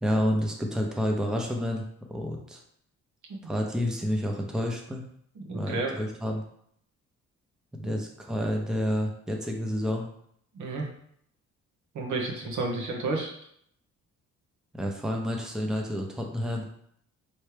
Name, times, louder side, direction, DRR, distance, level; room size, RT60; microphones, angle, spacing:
voice 1, 0.0-1.8 2.1-2.6 3.4-5.0 5.5-6.4 7.8-10.1 14.7-16.7, equal, ahead, 1 dB, 0.7 m, -29 dB
voice 2, 5.4-6.0 7.8-8.0 10.5-10.9 11.9-13.3, right 3 dB, 75° right, 0 dB, 1.2 m, -31 dB
4.4 x 3.2 x 3.3 m, 0.69 s
cardioid pair, 90°, 30 cm